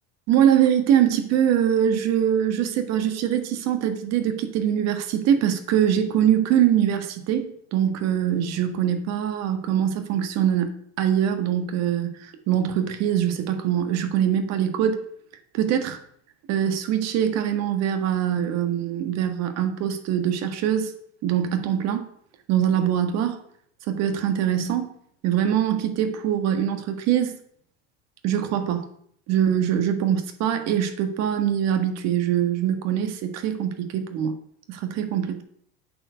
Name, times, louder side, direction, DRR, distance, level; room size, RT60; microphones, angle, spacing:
voice 1, 0.3-15.0 15.5-16.0 16.5-20.9 21.2-22.1 22.5-23.4 23.9-24.9 25.2-27.4 28.2-28.9 29.3-34.3 34.7-35.4, right 9 dB, 55° right, 7 dB, 1.6 m, -23 dB
8.7 x 4.6 x 6.9 m, 0.64 s
supercardioid pair, 100°, 31 cm